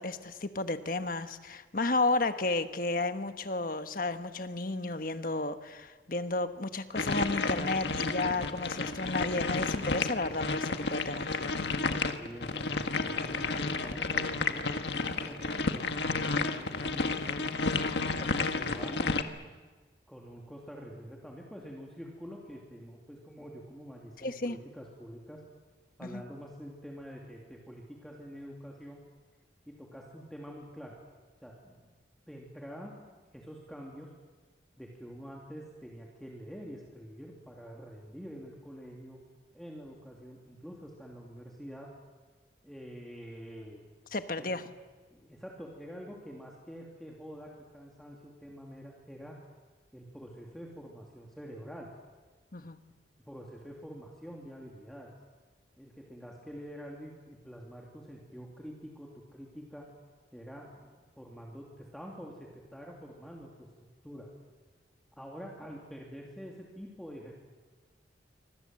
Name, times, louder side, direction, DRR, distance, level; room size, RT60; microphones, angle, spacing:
voice 1, 0.0-11.4 24.2-24.6 26.0-26.2 44.1-44.6 52.5-52.8, left 2 dB, 50° left, 9 dB, 1.3 m, -32 dB
sound 1, 6.9-19.2, left 3 dB, 70° left, 1.6 m, -31 dB
voice 2, 12.2-15.6 16.0-17.5 18.2-19.1 20.1-25.4 26.0-29.0 29.7-30.9 31.4-31.9 32.3-32.9 33.3-34.1 34.8-39.2 39.5-41.9 42.6-43.8 44.4-44.6 45.1-49.4 49.9-51.9 52.6-52.7 53.3-55.1 55.8-59.8 60.3-63.7 64.0-64.3 65.2-67.3, equal, ahead, -2 dB, 2.8 m, -46 dB
28.0 x 24.5 x 7.8 m, 1.4 s
head